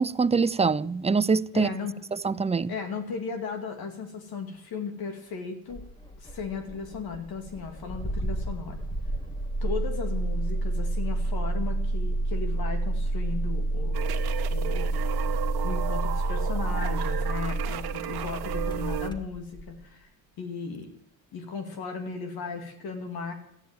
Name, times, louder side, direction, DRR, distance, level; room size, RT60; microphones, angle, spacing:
voice 1, 0.0-1.7 2.2-2.7, right 4 dB, 15° right, 0.6 m, -24 dB
voice 2, 1.5-2.0 2.7-5.8 6.2-8.8 9.6-14.0 14.5-15.0 15.3-15.4 15.6-20.1 20.4-20.9 21.3-23.3, left 5 dB, 70° left, 2.4 m, -36 dB
Engine starting, 5.7-19.8, right 2 dB, 10° left, 1.8 m, -29 dB
sound 1, 13.9-19.1, right 12 dB, 80° right, 1.4 m, -34 dB
14.0 x 10.0 x 9.0 m
cardioid pair, 75°, 38 cm